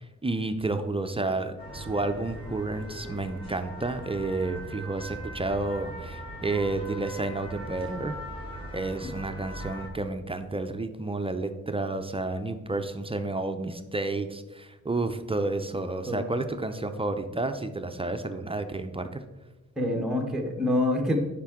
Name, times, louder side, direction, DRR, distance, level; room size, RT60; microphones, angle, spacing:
voice 1, 0.0-8.1 8.7-19.2, right 2 dB, 20° right, 8 dB, 0.4 m, -31 dB
sound 1, 1.6-9.9, right 1 dB, 15° left, 2.2 m, -40 dB
voice 2, 19.8-21.2, left 1 dB, ahead, 2 dB, 0.9 m, -26 dB
10.0 x 5.3 x 3.6 m, 1.1 s
wide cardioid pair, 130°, 30 cm